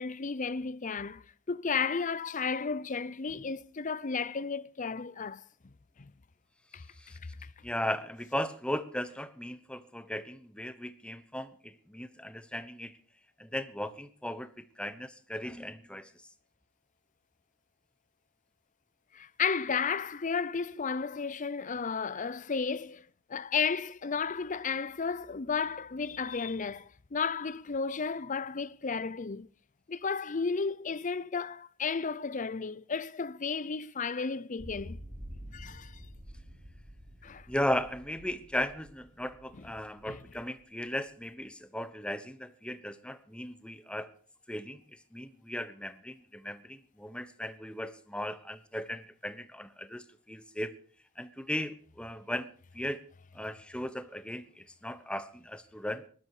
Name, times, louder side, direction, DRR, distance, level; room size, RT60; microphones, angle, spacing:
voice 1, 0.0-5.4 6.0-6.1 6.7-6.8 7.4-7.5 19.1-23.0 23.3-29.5 29.9-35.0 35.5-36.0 37.2-37.5 40.0-40.2, left 5 dB, 40° left, 0.6 m, -33 dB
voice 2, 7.6-13.0 13.4-16.1 37.5-44.1 44.5-44.8 45.1-50.7 51.2-52.5 52.7-53.0 53.3-56.0, left 1 dB, 5° left, 1.1 m, -37 dB
sound 1, 34.6-40.6, equal, 25° right, 5.6 m, -48 dB
19.5 x 12.5 x 4.9 m
head